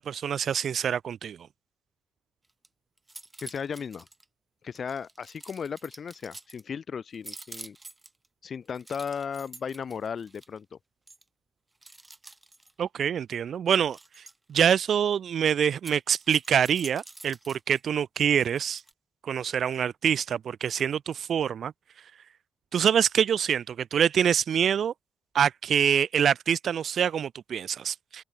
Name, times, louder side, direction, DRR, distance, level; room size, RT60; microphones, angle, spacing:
voice 1, 0.0-1.4 12.8-14.0 14.5-18.8 19.2-21.7 22.7-24.9 25.3-28.2, right 8 dB, 60° right, 0.8 m, -25 dB
sound 1, 2.4-2.7 3.0-4.2 4.7-6.6 7.1-8.3 8.7-10.6 11.1-11.2 11.8-12.8 13.7-14.6 15.7-17.8 18.4-18.9, right 2 dB, 15° right, 2.3 m, -47 dB
voice 2, 3.4-4.1 4.6-7.8 8.4-10.8, left 6 dB, 50° left, 3.1 m, -35 dB
open air
cardioid pair, 90°, 0 cm